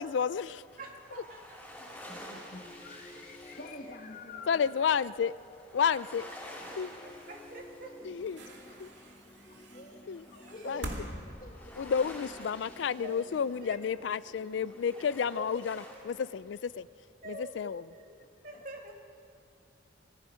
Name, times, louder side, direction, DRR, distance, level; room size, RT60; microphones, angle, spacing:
voice 1, 0.0-0.6 4.5-5.3 5.7-6.2 6.8-6.9 8.0-8.4 8.8-8.9 10.1-10.2 10.7-10.8 11.8-15.8 16.1-16.9 17.6-17.8, left 7 dB, 85° left, 17 dB, 0.4 m, -30 dB
sound 1, 0.6-16.0, left 1 dB, 10° left, 4.8 m, -51 dB
voice 2, 0.8-1.6 2.2-2.5 3.1-3.3 4.5-5.0 5.9-6.8 7.0-7.9 13.0-13.2 13.6-14.0 14.9-15.3 17.2-18.2 18.4-18.9, right 2 dB, 50° right, 1 dB, 2.7 m, -48 dB
voice 3, 2.3-5.0 5.7-5.8 7.8-8.0 9.5-10.0 10.3-11.0 11.4-12.1 12.4-13.1 15.3-15.7 18.2-18.3 18.5-18.6, left 2 dB, 50° left, 4 dB, 1.2 m, -48 dB
sound 2, 2.3-16.1, left 2 dB, 25° left, 0.7 m, -55 dB
sound 3, 8.2-12.4 13.4-13.5, right 1 dB, 85° right, 2.4 m, -44 dB
27.0 x 19.5 x 5.1 m, 2.6 s
head